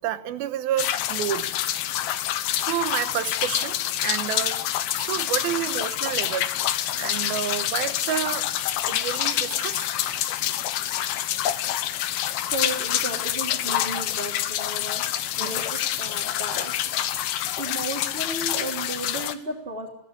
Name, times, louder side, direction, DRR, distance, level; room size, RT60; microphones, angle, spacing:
voice 1, 0.0-1.5 2.5-4.6 4.9-8.5 8.9-9.9 15.4-15.6, right 11 dB, 90° right, 3.0 m, -30 dB
sound 1, 0.8-19.3, left 12 dB, 80° left, 2.9 m, -27 dB
voice 2, 12.5-15.0 15.4-16.7 17.6-19.9, right 2 dB, 15° right, 3.4 m, -34 dB
22.5 x 17.5 x 9.8 m
omnidirectional pair, 4.2 m